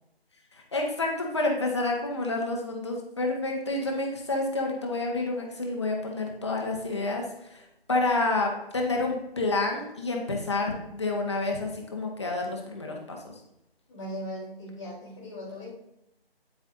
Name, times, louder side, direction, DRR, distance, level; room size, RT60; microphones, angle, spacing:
voice 1, 0.5-13.3, left 2 dB, 25° left, 1 dB, 1.4 m, -29 dB
voice 2, 13.9-15.7, equal, ahead, -24 dB, 0.8 m, -38 dB
9.5 x 8.8 x 2.7 m, 0.85 s
figure-of-eight pair, 170°, 31 cm